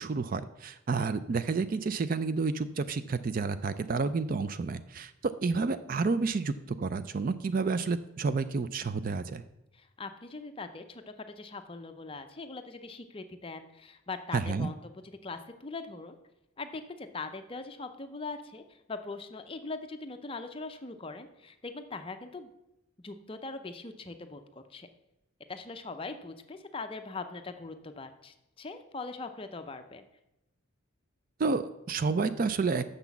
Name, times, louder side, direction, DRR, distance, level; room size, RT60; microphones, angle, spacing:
voice 1, 0.0-9.4 14.3-14.7 31.4-32.8, right 4 dB, 40° right, 13 dB, 0.3 m, -30 dB
voice 2, 9.7-14.8 15.2-16.2 16.6-22.5 23.0-24.9 25.5-30.0, left 3 dB, 25° left, 8 dB, 0.5 m, -41 dB
6.7 x 6.0 x 7.1 m, 0.92 s
head